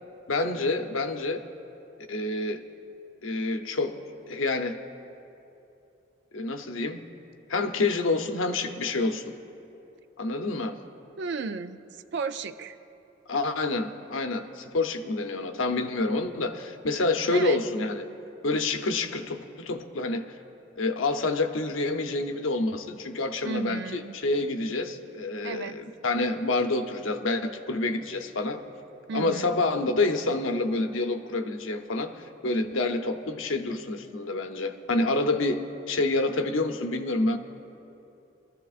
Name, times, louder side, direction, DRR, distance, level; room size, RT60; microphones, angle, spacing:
voice 1, 0.3-1.4 2.1-2.6 3.2-4.0 4.3-4.8 6.3-7.1 7.5-9.3 10.2-10.8 13.3-18.1 18.4-20.2 20.8-28.6 29.1-35.6 35.9-37.4, left 2 dB, 90° left, 6 dB, 0.8 m, -28 dB
voice 2, 11.2-11.8 12.1-12.8 17.3-17.6 23.4-24.2 25.4-25.8 29.1-29.5, right 4 dB, 60° right, 11 dB, 0.5 m, -33 dB
22.5 x 13.5 x 2.5 m, 2.8 s
head